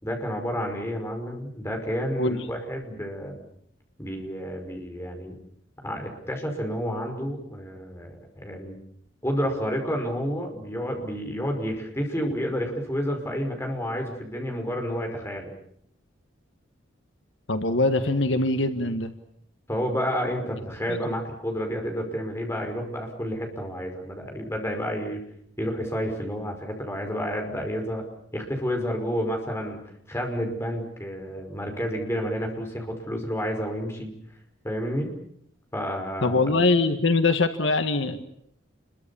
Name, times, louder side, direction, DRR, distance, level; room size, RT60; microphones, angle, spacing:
voice 1, 0.0-3.3 4.0-5.4 5.8-8.8 9.2-15.5 19.7-25.2 25.6-28.0 28.3-29.8 30.1-34.1 34.6-35.1 35.7-36.4, equal, 15° left, 3 dB, 5.5 m, -30 dB
voice 2, 17.5-19.1 20.9-21.0 36.2-38.2, left 3 dB, 70° left, 8 dB, 1.7 m, -23 dB
29.5 x 23.0 x 7.2 m, 0.68 s
head